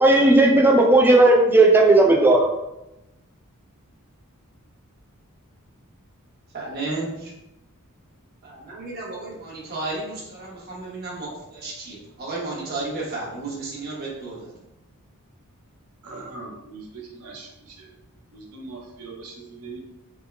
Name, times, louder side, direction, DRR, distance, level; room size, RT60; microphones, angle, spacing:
voice 1, 0.0-2.5, right 2 dB, 10° right, 0 dB, 0.4 m, -15 dB
voice 2, 6.5-7.3 8.4-11.3 11.5-14.5, right 2 dB, 45° right, -5 dB, 1.0 m, -33 dB
voice 3, 16.0-17.5 17.8-17.9 18.3-19.8, right 3 dB, 90° right, 0 dB, 0.7 m, -40 dB
3.5 x 2.1 x 3.2 m, 0.92 s
head